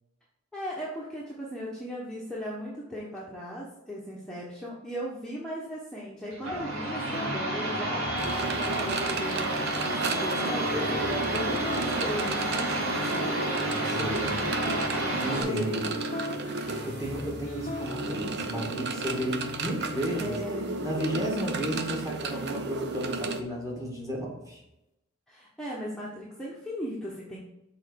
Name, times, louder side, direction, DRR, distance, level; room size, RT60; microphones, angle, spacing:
voice 1, 0.5-8.2 8.5-13.3 15.3-15.8 20.1-20.8 25.3-27.5, equal, 5° left, -6 dB, 1.2 m, -37 dB
sound 1, 6.3-15.4, right 2 dB, 85° right, 1.8 m, -30 dB
sound 2, 6.6-24.6, left 1 dB, 40° left, 0.8 m, -40 dB
sound 3, 8.2-23.4, right 3 dB, 55° right, 0.7 m, -34 dB
voice 2, 13.8-14.5 15.2-15.9 16.8-20.4 20.8-24.6, equal, 15° right, -3 dB, 2.1 m, -33 dB
6.4 x 4.1 x 6.3 m, 0.88 s
head